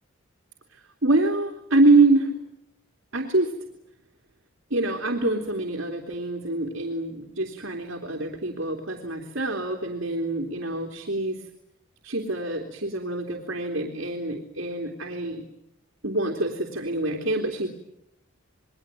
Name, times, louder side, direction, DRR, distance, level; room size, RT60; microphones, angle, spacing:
voice 1, 0.7-2.3 3.1-3.5 4.7-11.5 12.0-15.5 16.0-17.7, right 2 dB, 65° right, 2 dB, 3.3 m, -25 dB
29.0 x 22.0 x 9.1 m, 0.81 s
head